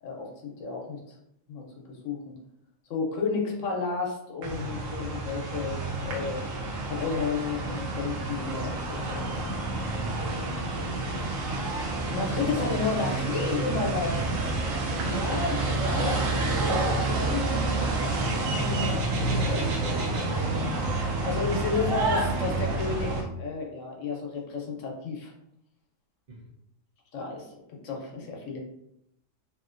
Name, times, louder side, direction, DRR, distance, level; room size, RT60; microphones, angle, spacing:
voice 1, 0.0-1.0 1.5-2.4 2.9-6.4 6.9-9.4 12.1-14.3 15.0-17.9 18.4-19.7 20.4-20.7 21.2-25.3 27.1-27.5 27.8-28.6, left 4 dB, 75° left, -1 dB, 1.1 m, -32 dB
sound 1, 4.4-23.2, right 2 dB, 90° right, 1.0 m, -29 dB
voice 2, 9.9-11.7 14.4-16.3 21.5-22.0 26.3-26.5, right 1 dB, 50° right, -5 dB, 1.0 m, -43 dB
2.8 x 2.8 x 2.5 m, 0.79 s
omnidirectional pair, 1.4 m